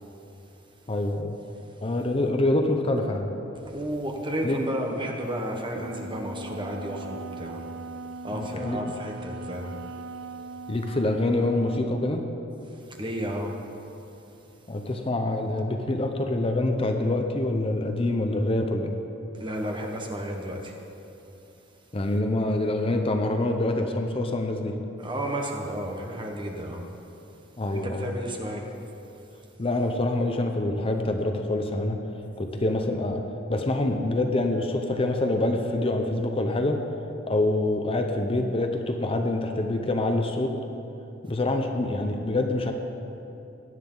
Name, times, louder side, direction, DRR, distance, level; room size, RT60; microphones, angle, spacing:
voice 1, 0.9-1.4 1.8-3.3 4.4-4.6 8.3-8.9 10.7-12.2 14.7-18.9 21.9-24.8 27.6-28.1 29.6-32.0 32.4-33.2 33.5-36.8 37.3-40.6 41.2-42.7, left 2 dB, 30° left, 4 dB, 0.7 m, -26 dB
voice 2, 3.7-7.6 8.2-9.8 12.7-13.6 19.3-20.8 25.0-26.8 27.7-28.7, equal, 25° right, 1 dB, 1.3 m, -32 dB
Wind instrument woodwind instrument, 5.7-12.0, right 3 dB, 70° right, 0.4 m, -40 dB
17.5 x 11.5 x 3.9 m, 2.9 s
head